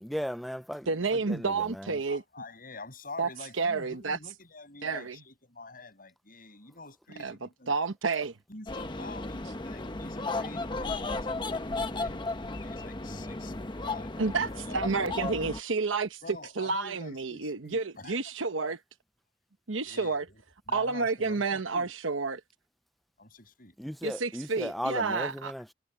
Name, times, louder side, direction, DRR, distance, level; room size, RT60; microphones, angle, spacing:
voice 1, 0.0-0.9 1.3-1.9 23.8-25.7, equal, ahead, 0.4 m, -36 dB
voice 2, 0.9-2.2 3.2-3.3 3.6-4.2 4.8-5.1 7.2-7.3 7.7-8.4 14.2-16.2 16.6-18.8 19.7-20.2 20.7-22.4 24.0-25.5, right 4 dB, 90° right, 1.1 m, -30 dB
voice 3, 2.1-7.7 8.5-13.6 13.8-15.2 16.2-18.3 19.8-20.4 20.7-21.9 23.2-23.7, left 3 dB, 45° left, 7.9 m, -47 dB
sound 1, 8.7-15.6, left 2 dB, 25° left, 1.0 m, -34 dB
head